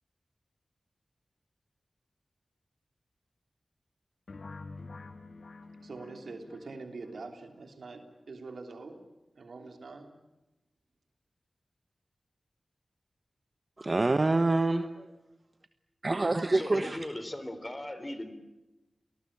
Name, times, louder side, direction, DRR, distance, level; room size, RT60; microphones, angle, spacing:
sound 1, 4.3-7.1, left 3 dB, 70° left, 2.0 m, -47 dB
voice 1, 5.6-9.0 9.3-10.2, right 3 dB, 80° right, 6 dB, 3.3 m, -44 dB
voice 2, 13.8-15.1 16.0-17.0, right 2 dB, 40° right, 9 dB, 1.3 m, -26 dB
voice 3, 16.5-18.3, left 1 dB, 25° left, 11 dB, 3.5 m, -38 dB
29.0 x 19.5 x 8.8 m, 0.99 s
wide cardioid pair, 60°, 0 cm